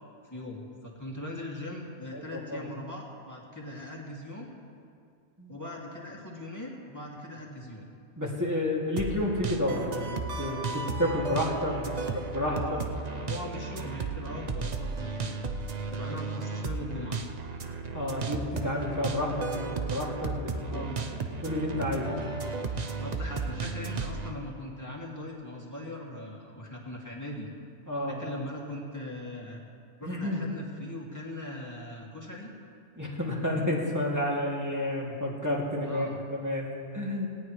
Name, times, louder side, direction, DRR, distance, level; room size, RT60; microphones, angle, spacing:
voice 1, 0.2-4.5 5.5-7.9 11.9-12.9 13.2-15.4 15.9-17.2 20.6-21.2 23.0-27.5 28.1-29.6 30.0-32.5 35.8-36.2, left 1 dB, 15° left, -3 dB, 2.3 m, -40 dB
voice 2, 2.1-2.7 5.4-5.6 8.2-12.8 17.9-20.9 21.4-22.3 27.9-28.2 30.0-30.4 33.0-37.3, left 1 dB, 15° right, -5 dB, 2.4 m, -31 dB
sound 1, 9.0-24.3, right 4 dB, 40° right, 0.6 m, -34 dB
18.5 x 17.5 x 3.2 m, 2.4 s
omnidirectional pair, 1.4 m